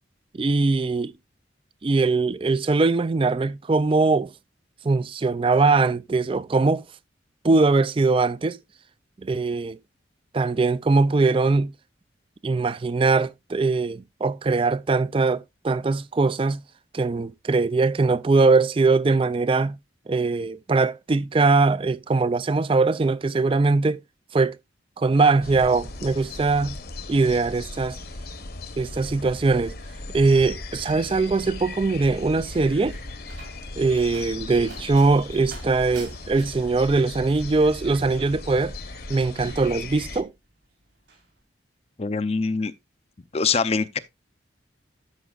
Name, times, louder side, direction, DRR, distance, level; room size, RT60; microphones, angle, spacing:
voice 1, 0.3-1.1 1.8-4.3 4.8-6.8 7.4-8.6 9.2-9.8 10.3-11.7 12.4-16.6 16.9-19.8 20.1-24.0 24.3-24.6 25.0-26.8 27.1-28.0 28.8-29.7 30.1-33.0 33.8-38.7 39.1-40.3, right 3 dB, 30° right, 0.4 m, -21 dB
sound 1, 25.4-40.2, left 2 dB, 55° left, 1.0 m, -38 dB
Slam, 32.6-40.5 40.8-41.3, right 3 dB, 70° right, 4.4 m, -48 dB
voice 2, 42.0-42.7 43.3-44.0, left 4 dB, 35° left, 0.5 m, -23 dB
13.0 x 5.7 x 2.4 m
head